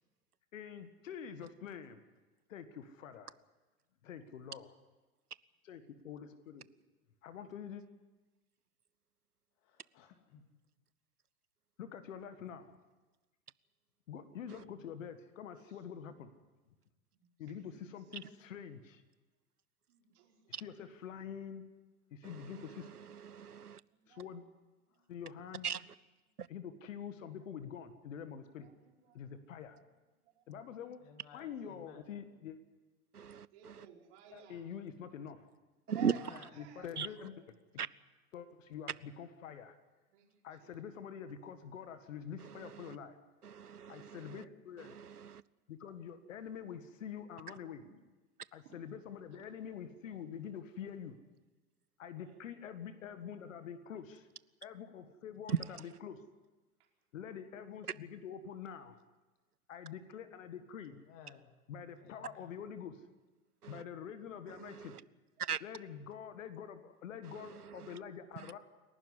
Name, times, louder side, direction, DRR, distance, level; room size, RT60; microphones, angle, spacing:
voice 1, 0.5-2.0 2.5-3.4 4.0-4.8 5.6-6.7 7.2-7.8 11.8-12.7 14.1-16.3 17.4-19.0 20.5-21.6 22.1-22.9 24.1-24.4 25.1-25.7 26.5-28.7 29.2-29.8 30.5-31.0 31.3-32.6 34.3-35.4 36.6-37.4 38.3-39.8 40.4-43.2 43.9-45.0 45.7-47.8 48.5-51.2 52.0-54.3 54.6-56.2 57.1-59.0 59.7-61.0 61.7-63.0 63.7-65.0 65.6-68.6, left 8 dB, 55° left, 10 dB, 1.7 m, -46 dB
voice 2, 9.6-10.4 24.9-25.1 31.0-32.1 36.0-36.6 60.9-61.5 62.0-62.6, left 7 dB, 40° left, 6 dB, 2.7 m, -56 dB
voice 3, 19.9-20.5 23.9-24.3 28.5-29.2 29.7-29.8 30.4-30.5 31.5-31.9 33.5-34.6 35.9-36.2 36.5-36.9 37.2-37.3 40.1-40.8 47.8-47.9 48.6-48.8 52.1-52.4 65.4-65.5, right 10 dB, 50° right, 0 dB, 4.8 m, -55 dB
voice 4, 23.3-23.8 25.6-25.8 33.1-33.5 35.9-36.1 37.0-37.1 37.8-37.9 43.4-44.2 44.9-45.4 55.5-55.6 63.6-63.8 65.5-65.6, right 7 dB, 85° right, 21 dB, 0.7 m, -35 dB
28.5 x 12.0 x 9.7 m, 1.2 s
figure-of-eight pair, 95°, 45 cm